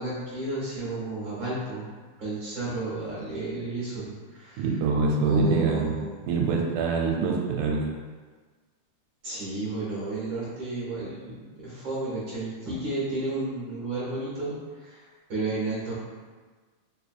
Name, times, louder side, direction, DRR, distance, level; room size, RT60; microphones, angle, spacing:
voice 1, 0.0-1.8 2.2-4.7 5.2-6.3 9.2-16.0, right 2 dB, 60° right, -8 dB, 1.3 m, -32 dB
voice 2, 4.6-5.9 6.3-7.9, right 4 dB, 80° right, 0 dB, 2.0 m, -24 dB
4.5 x 3.4 x 2.2 m, 1.4 s
omnidirectional pair, 3.6 m